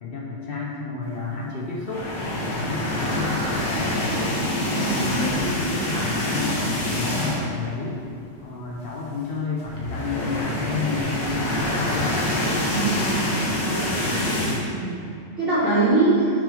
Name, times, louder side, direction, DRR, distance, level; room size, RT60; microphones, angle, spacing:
voice 1, 0.0-3.4 4.6-8.0 8.4-12.1, left 4 dB, 65° left, -3 dB, 0.5 m, -30 dB
sound 1, 1.8-7.6 8.0-8.2 8.4-8.5 9.6-14.6, left 1 dB, 80° left, 1.8 m, -26 dB
voice 2, 4.5-5.0 12.7-13.2 13.6-13.9 14.6-15.0 15.4-16.3, right 2 dB, 35° right, -12 dB, 1.5 m, -23 dB
6.2 x 5.3 x 3.3 m, 2.6 s
omnidirectional pair, 1.9 m